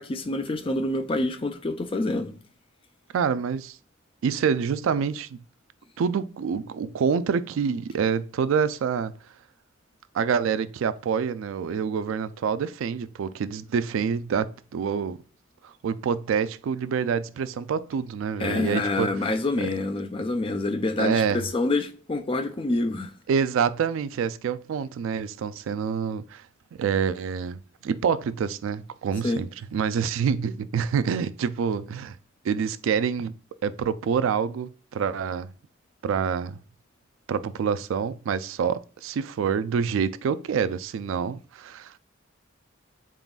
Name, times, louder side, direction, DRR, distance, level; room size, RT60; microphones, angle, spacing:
voice 1, 0.0-2.3 18.4-23.1 29.2-29.4, left 2 dB, 25° left, 0.4 m, -27 dB
voice 2, 3.1-3.8 4.2-5.4 6.0-9.1 10.1-15.2 15.6-19.1 19.6-19.7 21.0-21.4 23.3-26.4 26.8-32.2 32.4-33.4 33.6-35.5 36.0-36.6 37.3-42.0, right 6 dB, 75° right, 0.3 m, -27 dB
4.0 x 3.7 x 2.3 m
head